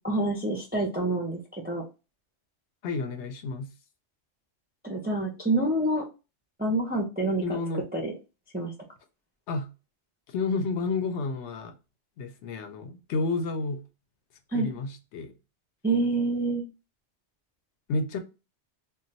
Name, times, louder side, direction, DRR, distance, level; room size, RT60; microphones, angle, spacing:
voice 1, 0.0-1.8 4.8-6.1 6.6-7.4 7.9-8.1 8.5-8.7 14.5-14.7 15.8-16.6, right 2 dB, 15° right, 0.3 m, -27 dB
voice 2, 2.8-3.7 7.4-7.8 9.5-9.7 10.3-11.7 12.2-13.8 14.5-15.3 17.9-18.2, left 3 dB, 80° left, 0.9 m, -30 dB
2.3 x 2.2 x 3.8 m
omnidirectional pair, 1.2 m